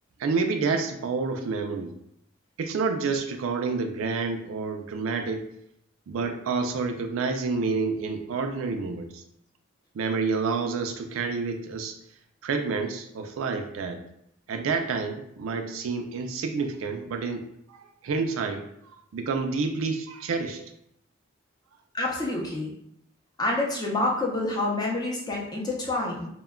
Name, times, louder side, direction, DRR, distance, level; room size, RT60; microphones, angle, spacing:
voice 1, 0.2-1.9 2.6-5.4 6.1-9.2 9.9-12.0 12.4-14.0 14.5-17.4 17.7-17.8 18.0-18.6 19.1-20.7, right 4 dB, 75° right, 5 dB, 0.3 m, -28 dB
voice 2, 21.9-22.7 23.4-26.3, left 2 dB, 20° left, -3 dB, 0.5 m, -27 dB
2.1 x 2.1 x 3.5 m, 0.74 s
head